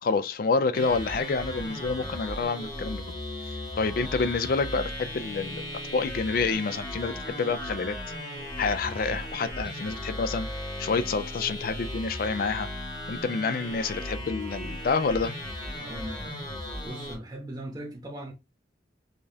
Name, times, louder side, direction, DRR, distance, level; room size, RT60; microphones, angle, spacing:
voice 1, 0.0-3.0 3.4-8.0 8.6-10.5 10.8-12.7 13.1-15.3, left 4 dB, 50° left, 0.4 m, -28 dB
sound 1, 0.7-17.1, left 1 dB, 20° left, 1.3 m, -36 dB
voice 2, 15.8-16.4 16.8-18.3, right 1 dB, 20° right, 0.8 m, -39 dB
4.9 x 2.4 x 2.7 m
head